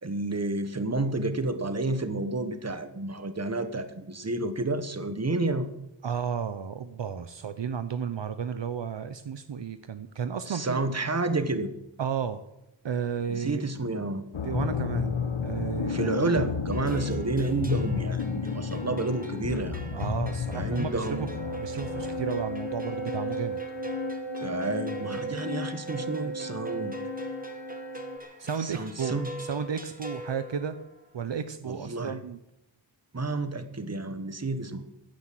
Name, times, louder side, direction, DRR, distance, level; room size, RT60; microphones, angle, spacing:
voice 1, 0.0-5.7 10.5-11.7 13.3-14.2 15.9-19.8 20.5-21.3 24.4-26.9 28.6-29.3 31.6-32.2 33.1-34.8, right 2 dB, 35° right, 10 dB, 1.4 m, -30 dB
voice 2, 6.0-10.8 12.0-12.4 12.8-13.6 14.4-16.1 19.9-21.3 21.6-23.6 28.4-30.8 31.1-32.4, right 7 dB, 65° right, 11 dB, 0.8 m, -33 dB
sound 1, 14.3-28.2, left 3 dB, 90° left, 1.2 m, -32 dB
sound 2, 16.7-31.1, right 1 dB, 20° right, 2.0 m, -44 dB
15.5 x 9.8 x 7.7 m, 0.90 s
wide cardioid pair, 85°, 46 cm